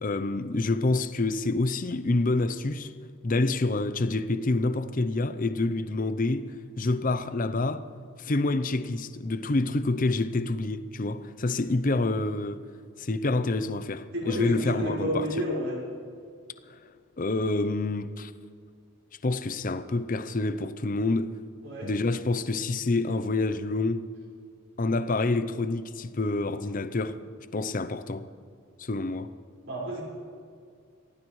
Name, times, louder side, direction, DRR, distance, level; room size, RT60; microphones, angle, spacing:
voice 1, 0.0-2.9 3.2-7.8 8.2-12.6 13.0-15.2 16.7-16.8 17.2-18.3 19.2-21.4 21.8-24.0 24.8-27.2 27.5-28.3 28.8-29.3, left 2 dB, 40° left, 0.6 m, -27 dB
voice 2, 14.1-15.8 21.6-21.9 29.7-30.0, equal, 60° right, 4.9 m, -30 dB
23.5 x 16.5 x 3.2 m
head